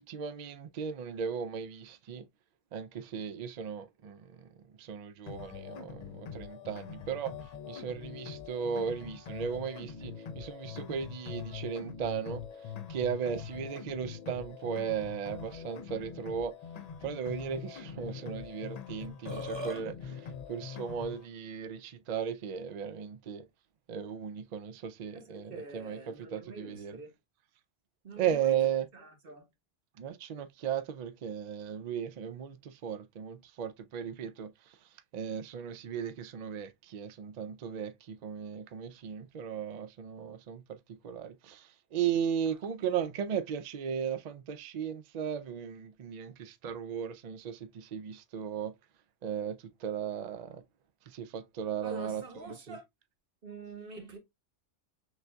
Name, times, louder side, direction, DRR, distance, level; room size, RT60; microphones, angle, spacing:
voice 1, 0.0-2.3 2.7-4.5 4.8-7.3 7.7-12.4 12.9-16.5 17.0-23.5 23.9-27.0 28.2-28.9 30.0-34.5 35.1-40.8 41.0-48.7 49.2-50.6 51.1-52.8, right 8 dB, 75° right, 0.4 m, -36 dB
sound 1, 5.3-21.3, left 7 dB, 70° left, 0.3 m, -43 dB
Burping eructation, 19.0-19.8, equal, 25° right, 0.9 m, -38 dB
voice 2, 25.1-27.1 28.0-28.6 28.9-29.5 51.8-52.8 53.4-54.2, right 3 dB, 50° right, 1.3 m, -46 dB
6.2 x 2.6 x 2.2 m
omnidirectional pair, 1.3 m